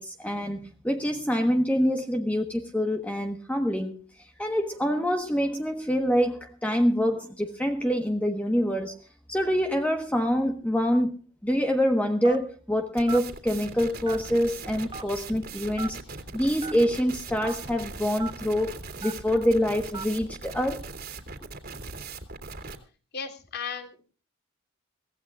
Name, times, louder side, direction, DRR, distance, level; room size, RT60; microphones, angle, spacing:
voice 1, 0.0-4.0 4.4-9.0 9.3-11.1 11.4-16.0 16.3-18.7 19.0-20.9, equal, 5° left, 1.2 m, -26 dB
Telephone, 12.2-12.6 13.1-13.3 14.0-14.4 14.9-15.0 15.8-15.9 16.6-16.7 17.4-17.6 18.2-18.3 19.0-19.2 19.9-20.1, right 4 dB, 25° right, 1.2 m, -36 dB
sound 1, 13.0-22.8, right 4 dB, 50° right, 2.8 m, -40 dB
voice 2, 23.1-24.0, left 6 dB, 55° left, 3.2 m, -35 dB
23.5 x 17.0 x 2.4 m
head